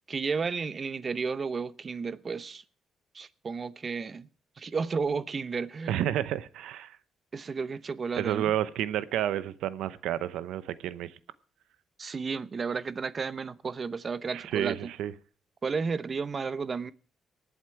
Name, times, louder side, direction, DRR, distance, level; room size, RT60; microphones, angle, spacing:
voice 1, 0.1-2.6 3.1-4.3 4.6-6.0 7.3-8.5 12.0-14.9 15.6-16.9, right 5 dB, 40° right, 0.8 m, -32 dB
voice 2, 5.9-7.0 8.2-11.1 14.3-15.1, right 11 dB, 85° right, 0.7 m, -30 dB
19.0 x 8.2 x 4.6 m
cardioid pair, 90°, 0 cm